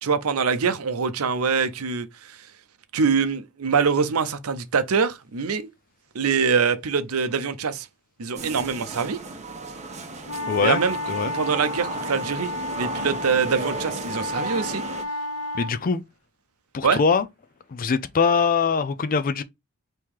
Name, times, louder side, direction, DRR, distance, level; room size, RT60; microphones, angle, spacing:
voice 1, 0.0-2.4 2.9-5.7 6.1-7.9 8.2-9.2 10.6-11.0 11.3-14.8 16.8-17.0, right 5 dB, 75° right, 0.6 m, -24 dB
sound 1, 8.4-15.0, right 3 dB, 30° right, 0.9 m, -35 dB
sound 2, 10.2-15.8, left 1 dB, 85° left, 0.9 m, -32 dB
voice 2, 10.5-10.8 11.1-11.3 15.5-16.0 16.7-17.3 17.7-19.4, left 5 dB, 40° left, 0.4 m, -22 dB
4.7 x 3.0 x 3.6 m
head